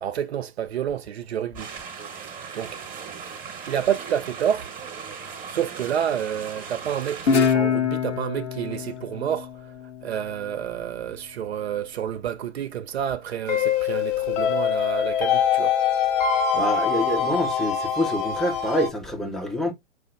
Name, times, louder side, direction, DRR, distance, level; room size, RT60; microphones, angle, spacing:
voice 1, 0.0-1.7 2.5-2.8 3.7-4.7 5.5-9.7 10.0-15.8, right 9 dB, 60° right, 0.8 m, -29 dB
sound 1, 1.6-7.5, right 6 dB, 25° right, 1.1 m, -38 dB
Guitar, 7.3-10.5, left 7 dB, 80° left, 1.0 m, -25 dB
sound 2, 13.5-18.9, left 7 dB, 35° left, 0.8 m, -23 dB
voice 2, 16.5-19.7, left 1 dB, ahead, 0.6 m, -26 dB
5.0 x 2.0 x 4.7 m
figure-of-eight pair, 110°, 35 cm